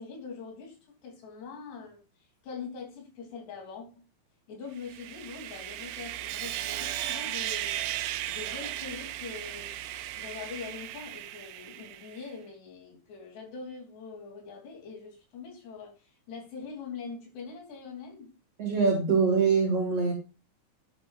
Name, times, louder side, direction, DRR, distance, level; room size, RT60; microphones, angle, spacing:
voice 1, 0.0-2.0 2.4-4.0 4.5-8.0 8.3-9.8 10.2-18.3, left 5 dB, 90° left, 1 dB, 5.1 m, -43 dB
Sawing, 4.8-12.2, right 13 dB, 80° right, 2.1 m, -36 dB
voice 2, 18.6-20.1, right 5 dB, 50° right, 0 dB, 2.0 m, -24 dB
10.5 x 9.9 x 2.4 m, 0.32 s
omnidirectional pair, 4.7 m